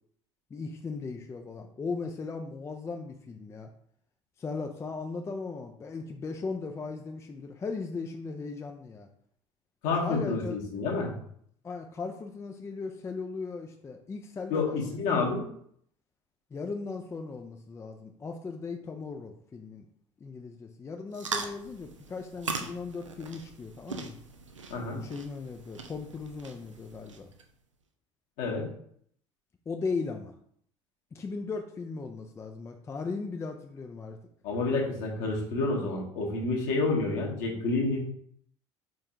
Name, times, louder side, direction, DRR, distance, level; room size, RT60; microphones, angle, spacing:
voice 1, 0.5-3.7 4.4-9.1 10.0-10.6 11.6-15.3 16.5-19.9 20.2-24.2 24.9-27.3 29.7-30.3 31.1-34.2, left 4 dB, 20° left, 4 dB, 0.4 m, -37 dB
voice 2, 9.8-11.1 14.5-15.4 24.7-25.0 28.4-28.6 34.4-38.0, left 3 dB, 55° left, -2 dB, 1.2 m, -29 dB
sound 1, 21.1-27.4, right 4 dB, 85° right, 0.4 m, -40 dB
4.5 x 3.7 x 2.6 m, 0.66 s
figure-of-eight pair, 60°, 15 cm